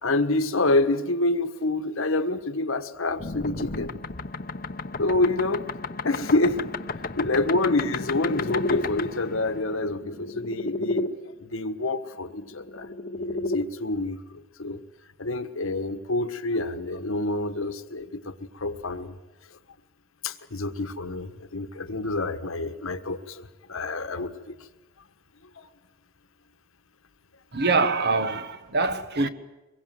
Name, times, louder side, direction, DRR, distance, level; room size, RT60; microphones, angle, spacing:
voice 1, 0.0-3.9 5.0-5.7 6.0-6.7 7.1-11.1 11.4-12.9 13.1-14.8 15.2-19.2 20.2-24.6 25.6-25.7, left 2 dB, 65° left, 1.4 m, -27 dB
sound 1, 3.2-11.1 12.4-13.6, left 3 dB, 40° left, 0.9 m, -32 dB
voice 2, 27.5-29.3, right 3 dB, 50° right, 1.3 m, -24 dB
24.5 x 22.5 x 7.8 m
head